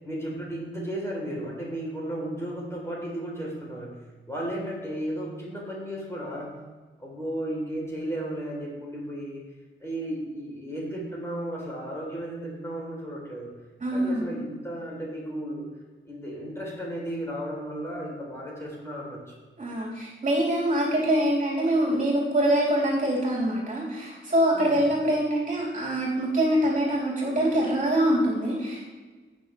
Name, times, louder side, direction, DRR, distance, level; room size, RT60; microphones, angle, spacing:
voice 1, 0.0-4.0 4.3-6.6 7.0-9.4 9.8-13.5 13.9-15.7 16.1-19.4 24.5-24.9, right 1 dB, 15° left, -3 dB, 3.7 m, -34 dB
voice 2, 13.8-14.3 19.6-28.9, right 1 dB, 40° right, -4 dB, 3.2 m, -24 dB
17.0 x 6.5 x 3.3 m, 1.3 s
wide cardioid pair, 120°, 21 cm